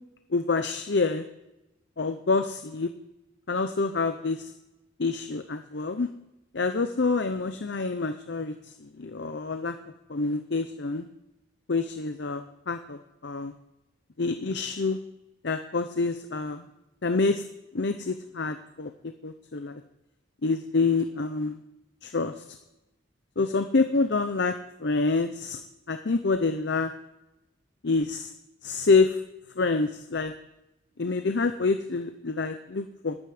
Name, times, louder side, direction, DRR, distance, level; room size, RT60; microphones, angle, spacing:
voice 1, 0.3-1.2 2.0-2.9 3.5-4.5 5.0-6.1 6.5-8.5 8.8-9.7 10.1-11.1 11.7-13.5 14.2-15.0 15.4-16.6 17.0-17.4 17.7-18.9 19.2-19.8 20.4-21.6 22.0-22.4 23.4-25.6 25.9-26.9 27.8-28.3 28.6-29.2 29.6-30.3 31.0-33.2, left 3 dB, 60° left, 8 dB, 0.7 m, -27 dB
11.5 x 9.0 x 7.7 m, 0.92 s
head